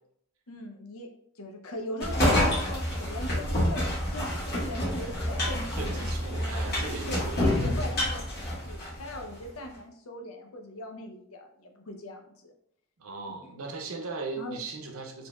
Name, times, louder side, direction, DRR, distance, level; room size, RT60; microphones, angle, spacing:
voice 1, 0.5-1.1 1.4-6.1 6.8-7.2 7.6-12.5 13.3-13.4 14.4-14.6, left 1 dB, 80° left, 3 dB, 0.7 m, -40 dB
sound 1, 2.0-9.2, left 1 dB, 50° left, 1.5 m, -28 dB
voice 2, 5.7-7.6 13.0-15.3, right 3 dB, 70° right, 3 dB, 0.7 m, -38 dB
4.2 x 3.3 x 2.3 m, 0.69 s
head